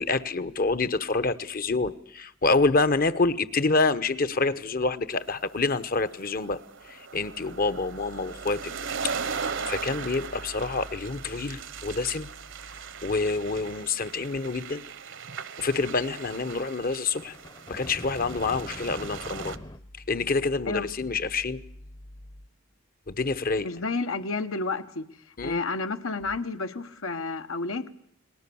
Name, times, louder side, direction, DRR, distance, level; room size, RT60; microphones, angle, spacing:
voice 1, 0.0-6.6 7.1-8.7 9.3-12.3 13.0-14.8 15.6-17.3 17.7-19.5 20.1-21.6 23.1-23.7 25.4-25.6, left 3 dB, 45° left, 14 dB, 1.0 m, -27 dB
sound 1, 5.3-19.6, right 6 dB, 60° right, 1.1 m, -38 dB
sound 2, 17.1-19.8, left 1 dB, 20° left, 0.9 m, -43 dB
voice 2, 23.6-25.1 25.4-27.9, left 3 dB, 75° left, 8 dB, 1.4 m, -31 dB
29.5 x 20.0 x 7.1 m, 0.70 s
head